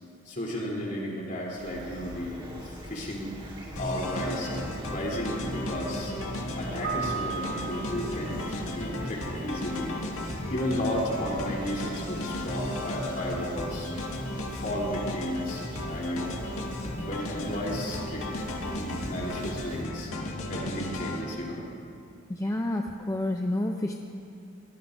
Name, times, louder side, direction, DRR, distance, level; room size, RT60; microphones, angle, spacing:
voice 1, 0.3-3.3 3.8-4.6 4.9-6.1 6.6-10.2 10.5-13.9 14.5-16.4 17.0-20.1 20.5-21.6, equal, 40° left, -3 dB, 3.4 m, -33 dB
Fowl / Chirp tweet, 1.6-19.8, equal, 25° right, 2.0 m, -42 dB
sound 1, 3.8-21.2, left 1 dB, 85° left, 1.8 m, -35 dB
Keyboard (musical), 6.8-8.6, right 6 dB, 50° right, 0.4 m, -35 dB
voice 2, 22.3-23.9, left 1 dB, 15° left, 2 dB, 0.5 m, -29 dB
25.0 x 18.0 x 2.7 m, 2.6 s
head